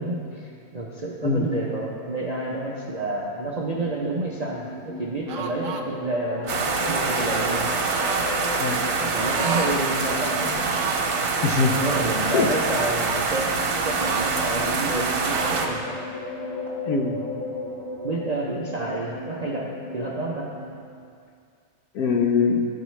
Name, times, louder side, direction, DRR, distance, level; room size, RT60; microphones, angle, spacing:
voice 1, 0.0-7.8 9.1-10.6 11.7-13.5 13.9-15.9 18.0-19.7 19.9-20.5, right 2 dB, 50° right, -4 dB, 0.4 m, -29 dB
sound 1, 3.4-20.7, left 2 dB, 45° left, 1.2 m, -36 dB
sound 2, 5.3-5.8 6.4-7.1 7.9-8.3 9.2-9.8 10.1-10.2 10.6-11.1 11.8-13.2 13.9-14.9 15.2-15.8, right 5 dB, 65° right, 0.8 m, -32 dB
sound 3, 6.5-15.7, right 4 dB, 85° right, 1.3 m, -25 dB
voice 2, 11.4-11.8 12.3-12.5 16.9-17.2 21.9-22.6, left 4 dB, 80° left, 4 dB, 1.2 m, -22 dB
12.5 x 4.8 x 3.1 m, 2.3 s
omnidirectional pair, 1.6 m